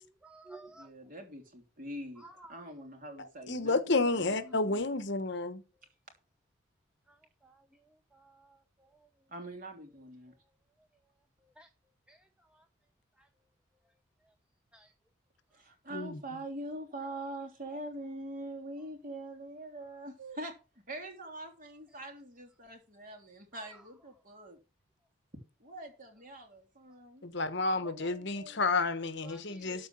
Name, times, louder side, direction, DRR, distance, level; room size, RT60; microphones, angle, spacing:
voice 1, 0.0-0.9 2.2-2.6 7.1-9.1 11.6-11.7 12.1-12.6 13.2-13.3 14.7-14.9 23.5-23.7 29.2-29.9, right 2 dB, 5° right, 0.7 m, -55 dB
voice 2, 0.8-4.9 9.3-10.3 15.5-20.5 20.9-24.6 25.6-28.6, right 1 dB, 40° right, 3.3 m, -44 dB
voice 3, 3.2-5.6 15.9-16.2 27.2-29.9, left 3 dB, 55° left, 1.2 m, -31 dB
13.5 x 4.8 x 7.5 m
head